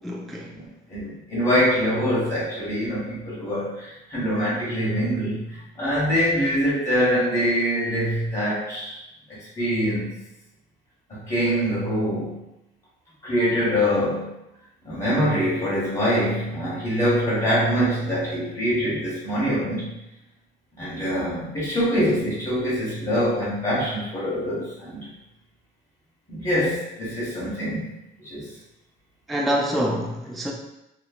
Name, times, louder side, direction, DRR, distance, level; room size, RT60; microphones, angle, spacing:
voice 1, 0.0-0.5 29.3-30.5, equal, ahead, -1 dB, 0.3 m, -26 dB
voice 2, 0.5-9.0 9.6-10.2 11.1-12.4 13.2-14.3 14.8-19.9 20.8-25.0 26.3-27.9 28.3-28.5, equal, 35° left, -9 dB, 1.3 m, -24 dB
3.0 x 2.2 x 2.4 m, 0.89 s
cardioid pair, 90°, 20 cm